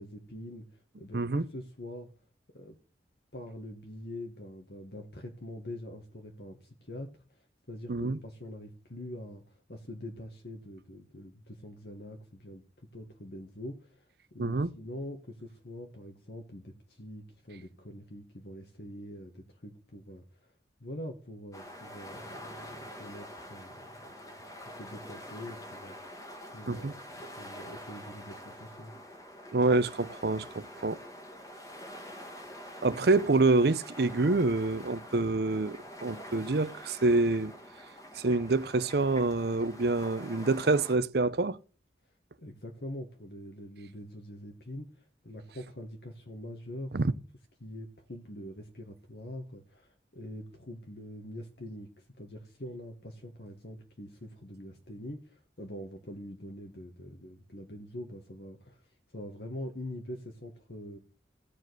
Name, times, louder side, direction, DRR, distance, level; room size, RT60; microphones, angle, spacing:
voice 1, 0.0-2.1 2.5-2.8 3.3-14.0 14.3-20.5 20.8-26.2 26.5-28.9 42.4-46.9 47.6-61.0, left 1 dB, 60° left, 1.4 m, -44 dB
voice 2, 14.4-14.7 26.7-26.9 29.5-31.0 32.8-37.6 38.1-41.6 46.9-47.1, right 3 dB, 60° right, 0.6 m, -27 dB
sound 1, 21.5-40.9, equal, 20° left, 1.6 m, -46 dB
15.0 x 5.0 x 7.8 m
head